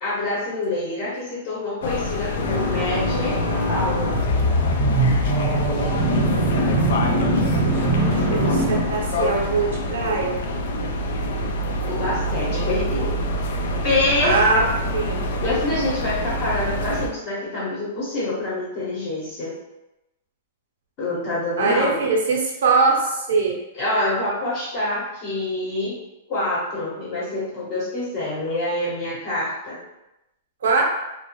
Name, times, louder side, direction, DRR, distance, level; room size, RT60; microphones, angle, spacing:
voice 1, 0.0-3.4 3.7-4.2 11.8-13.2 13.8-14.4 15.4-19.6 21.0-22.0 23.7-26.0 26.3-29.8, left 2 dB, 30° left, -7 dB, 0.9 m, -26 dB
sound 1, 1.8-17.1, left 1 dB, 65° left, 0.3 m, -26 dB
sound 2, 2.4-9.3, right 1 dB, 5° left, 0.9 m, -22 dB
voice 2, 7.8-10.4 14.2-15.3 21.6-23.6 30.6-30.8, right 4 dB, 80° right, 0 dB, 0.7 m, -22 dB
2.5 x 2.1 x 2.9 m, 0.93 s
supercardioid pair, 170°, 0 cm